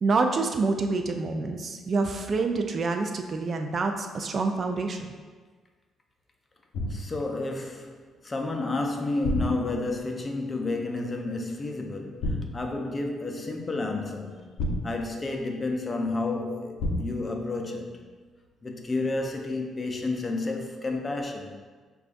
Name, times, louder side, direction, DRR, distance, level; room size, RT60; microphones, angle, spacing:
voice 1, 0.0-5.1, right 3 dB, 45° right, 5 dB, 0.3 m, -27 dB
sound 1, 6.7-7.3 9.2-10.0 12.2-12.8 14.6-15.4 16.8-17.4, left 1 dB, 85° left, 0.4 m, -30 dB
voice 2, 6.9-14.5 14.8-18.0 18.6-21.6, left 2 dB, 30° left, 3 dB, 0.5 m, -31 dB
6.2 x 2.3 x 2.5 m, 1.4 s
cardioid pair, 90°, 0 cm